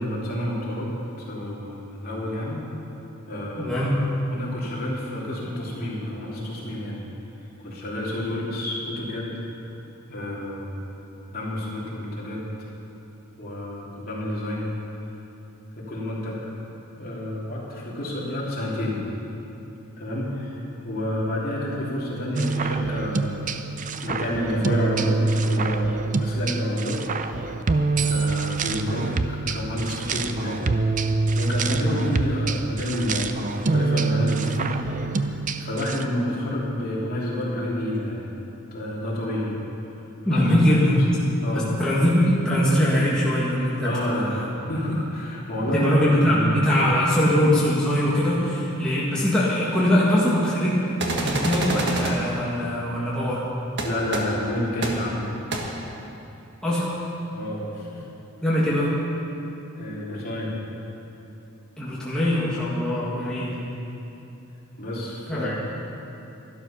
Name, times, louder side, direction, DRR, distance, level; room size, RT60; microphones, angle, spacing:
voice 1, 0.0-2.6 3.3-3.8 4.3-7.0 7.6-9.4 10.1-10.8 11.3-12.5 13.4-14.8 15.7-16.5 17.0-19.0 20.0-23.4 24.0-27.0 27.3-27.6 28.0-30.7 31.0-38.3 38.7-39.5 40.3-40.5 41.4-41.7 43.8-45.9 46.2-46.6 53.8-55.3 57.3-58.0 59.7-60.6 64.7-65.6, left 1 dB, 45° left, -6 dB, 3.1 m, -29 dB
voice 2, 3.6-4.0 40.2-41.0 41.5-43.9 44.3-44.4 45.7-50.8 51.2-53.4 56.6-56.9 58.4-58.9 61.8-63.6 65.3-65.6, equal, 5° left, -8 dB, 1.8 m, -22 dB
sound 1, 22.3-36.0, right 3 dB, 35° right, 0.5 m, -25 dB
sound 2, 51.0-52.1 53.8-53.9 54.1-54.2 54.8-54.9 55.5-55.6, right 2 dB, 55° right, 1.5 m, -26 dB
12.5 x 12.0 x 5.7 m, 2.9 s
head